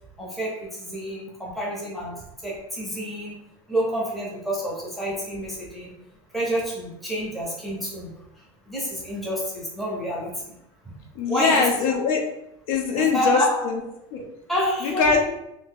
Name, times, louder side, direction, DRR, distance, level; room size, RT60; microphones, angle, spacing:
voice 1, 0.2-2.1 2.4-3.4 3.7-5.9 6.3-8.1 8.7-10.3 11.3-11.7 12.9-13.5 14.5-15.1, equal, ahead, -5 dB, 0.6 m, -28 dB
voice 2, 11.1-12.2 12.7-13.8 14.1-14.3 14.8-15.2, left 5 dB, 85° left, 2 dB, 0.8 m, -22 dB
2.8 x 2.7 x 3.6 m, 0.83 s
cardioid pair, 180°, 17 cm